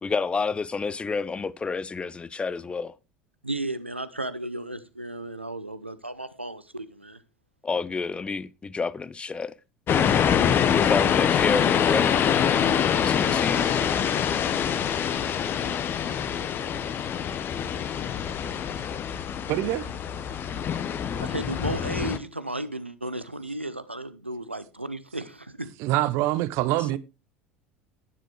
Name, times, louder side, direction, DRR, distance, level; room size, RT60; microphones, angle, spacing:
voice 1, 0.0-2.9 7.6-9.5 10.7-12.3 12.9-13.8 26.8-26.9, left 4 dB, 15° left, 0.6 m, -29 dB
voice 2, 3.4-7.2 21.2-25.7, right 1 dB, 90° right, 0.7 m, -34 dB
sound 1, 9.9-22.2, left 8 dB, 35° left, 1.0 m, -25 dB
voice 3, 19.5-19.9 25.8-27.0, right 15 dB, 50° right, 0.8 m, -25 dB
11.0 x 10.0 x 3.3 m
figure-of-eight pair, 70°, 6 cm